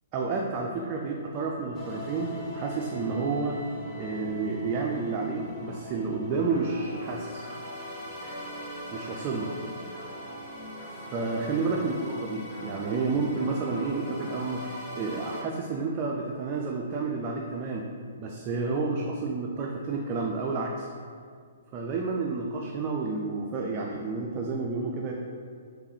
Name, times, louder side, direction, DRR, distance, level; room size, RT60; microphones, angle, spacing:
voice 1, 0.1-3.6 4.0-7.4 8.9-9.5 11.0-17.8 18.2-20.9 21.7-25.1, right 4 dB, 30° right, -1 dB, 0.3 m, -30 dB
sound 1, 1.7-15.4, left 1 dB, 15° left, 0.6 m, -40 dB
3.6 x 3.2 x 3.0 m, 2.1 s
figure-of-eight pair, 120°, 0 cm